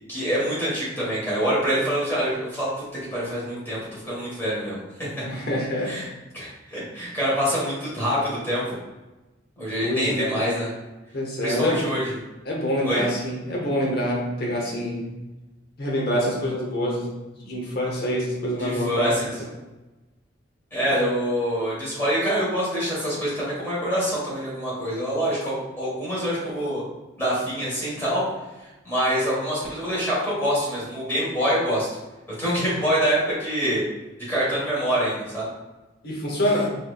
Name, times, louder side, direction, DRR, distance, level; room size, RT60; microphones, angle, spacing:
voice 1, 0.1-2.7 3.1-4.8 5.9-6.1 6.3-8.8 9.6-10.7 11.4-12.0 12.8-13.0 18.6-19.3 20.7-26.8 27.2-28.2 28.8-31.9 32.4-33.8 34.3-35.5, equal, 10° left, -8 dB, 1.4 m, -25 dB
voice 2, 5.2-6.0 9.8-10.3 11.1-11.9 12.4-15.1 15.8-17.1 17.4-19.2 20.8-20.9 36.0-36.7, equal, 55° left, -2 dB, 0.9 m, -26 dB
4.2 x 2.6 x 2.4 m, 1.1 s
head